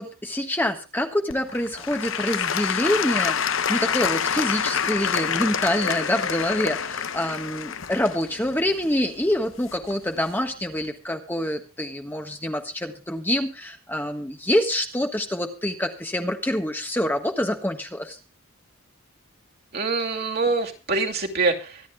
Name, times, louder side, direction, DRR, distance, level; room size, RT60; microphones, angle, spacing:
voice 1, 0.0-18.2, left 1 dB, 10° left, 5 dB, 1.4 m, -26 dB
Applause / Crowd, 1.3-10.2 10.8-10.9, left 7 dB, 65° left, 0.9 m, -27 dB
voice 2, 19.7-21.8, right 3 dB, 45° right, 2 dB, 2.5 m, -25 dB
25.0 x 11.0 x 2.3 m, 0.32 s
head